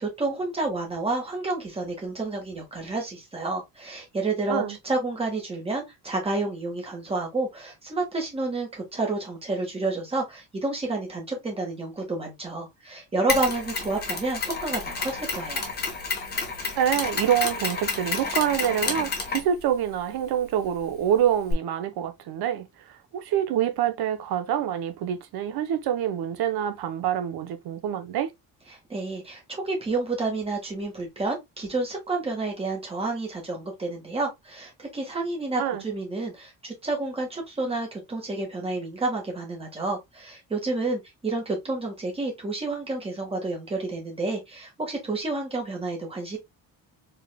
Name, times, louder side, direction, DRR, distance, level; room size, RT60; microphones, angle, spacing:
voice 1, 0.0-15.7 28.9-46.4, right 3 dB, 15° right, 1.5 m, -30 dB
Mechanisms, 13.3-21.5, left 4 dB, 25° left, 1.2 m, -31 dB
voice 2, 16.8-28.3 35.6-35.8, right 10 dB, 75° right, 0.8 m, -26 dB
4.5 x 3.4 x 2.2 m
cardioid pair, 180°, 38 cm